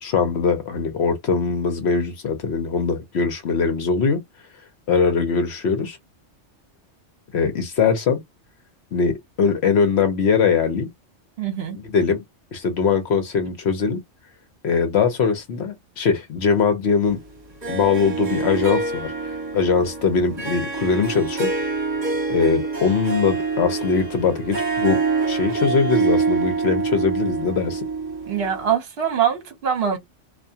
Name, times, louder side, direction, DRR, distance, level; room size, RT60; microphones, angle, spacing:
voice 1, 0.0-4.2 4.9-6.0 7.3-8.2 8.9-10.9 11.8-12.2 12.5-14.0 14.6-17.2 17.7-21.5 22.3-25.0 25.3-27.8, left 5 dB, 65° left, 0.9 m, -21 dB
voice 2, 11.4-11.8 28.3-30.0, right 8 dB, 60° right, 1.0 m, -23 dB
Harp, 17.6-28.7, right 4 dB, 35° right, 1.3 m, -26 dB
2.4 x 2.2 x 2.7 m
omnidirectional pair, 1.3 m